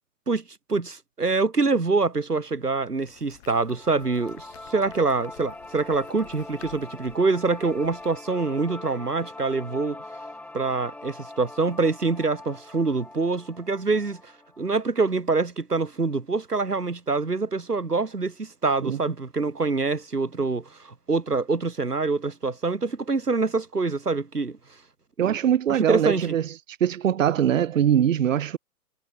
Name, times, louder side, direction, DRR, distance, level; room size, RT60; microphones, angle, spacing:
voice 1, 0.7-10.0 10.5-14.3 14.6-24.6 25.2-25.4 25.7-26.4, right 3 dB, 85° right, 2.0 m, -25 dB
Very greedy cat, 3.0-8.2, left 12 dB, 45° left, 7.3 m, -53 dB
sound 1, 3.7-14.7, left 2 dB, 5° left, 3.1 m, -42 dB
voice 2, 25.2-26.4 26.8-28.6, right 9 dB, 55° right, 1.2 m, -22 dB
figure-of-eight pair, 125°, 46 cm